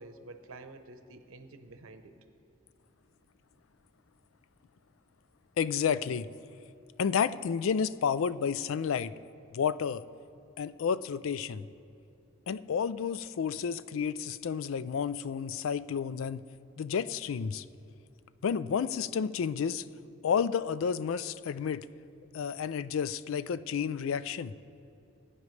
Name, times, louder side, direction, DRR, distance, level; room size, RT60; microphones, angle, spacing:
voice 1, 0.0-2.1, right 2 dB, 90° right, 8 dB, 0.8 m, -49 dB
voice 2, 5.6-6.3 7.0-9.1 9.5-10.0 10.6-11.7 12.5-16.4 16.8-17.6 18.4-19.8 20.2-21.9 22.3-24.5, left 7 dB, 75° left, 16 dB, 0.3 m, -31 dB
20.0 x 9.6 x 3.2 m, 2.6 s
head